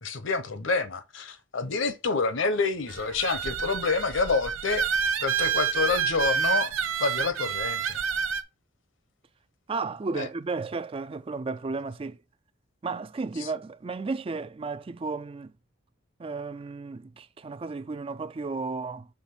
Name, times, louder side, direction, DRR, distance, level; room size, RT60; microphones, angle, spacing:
voice 1, 0.0-4.9 5.2-6.7 7.0-8.0 10.1-10.3 13.4-13.5, left 4 dB, 65° left, 0.9 m, -28 dB
sound 1, 2.9-8.4, right 7 dB, 80° right, 0.8 m, -28 dB
voice 2, 9.7-12.2 12.8-15.5 16.2-19.1, right 4 dB, 25° right, 0.3 m, -33 dB
5.8 x 3.5 x 5.9 m
head